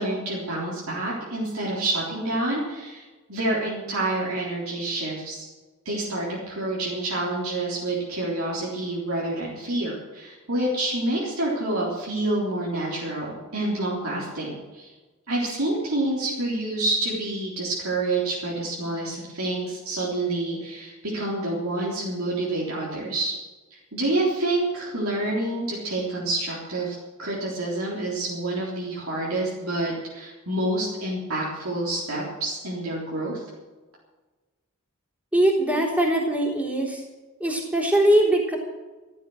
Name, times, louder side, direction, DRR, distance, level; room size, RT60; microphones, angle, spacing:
voice 1, 0.0-5.5 5.9-14.9 15.3-23.3 23.7-33.4, right 2 dB, 80° right, -5 dB, 3.8 m, -28 dB
voice 2, 35.3-37.0 37.4-38.6, right 1 dB, 5° right, -3 dB, 3.6 m, -21 dB
15.0 x 12.0 x 6.4 m, 1.3 s
head